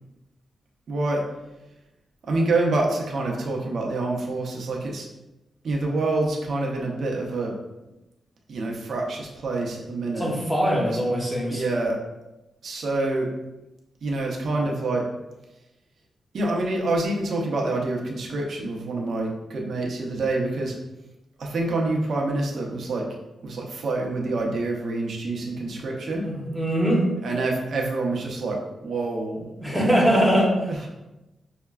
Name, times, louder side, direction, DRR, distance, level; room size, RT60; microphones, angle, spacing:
voice 1, 0.9-1.2 2.3-5.1 5.6-7.6 8.5-10.3 10.9-11.0 11.5-12.0 12.6-13.3 14.0-15.1 16.3-20.7 21.4-23.1 23.4-26.3 27.2-29.9 30.7-30.9, right 2 dB, 65° right, -1 dB, 0.7 m, -27 dB
voice 2, 10.2-11.6 26.2-27.0 29.6-30.6, equal, ahead, -3 dB, 1.1 m, -22 dB
5.6 x 2.1 x 2.3 m, 0.99 s
cardioid pair, 90°, 0 cm